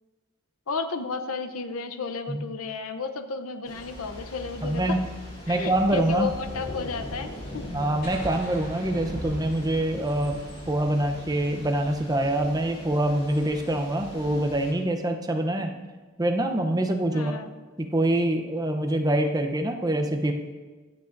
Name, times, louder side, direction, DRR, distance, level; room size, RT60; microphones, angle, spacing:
voice 1, 0.7-5.0 5.5-7.7 17.1-17.5, left 4 dB, 80° left, 9 dB, 0.8 m, -33 dB
Thunder / Rain, 3.6-14.7, left 1 dB, 30° left, 3.1 m, -40 dB
voice 2, 4.6-5.0 5.5-6.3 7.7-10.4 10.7-15.7 16.2-17.4 17.8-20.3, right 1 dB, 15° right, 4 dB, 0.7 m, -25 dB
sound 1, 8.0-11.5, left 1 dB, 45° left, 3.5 m, -43 dB
23.5 x 8.2 x 2.6 m, 1.3 s
head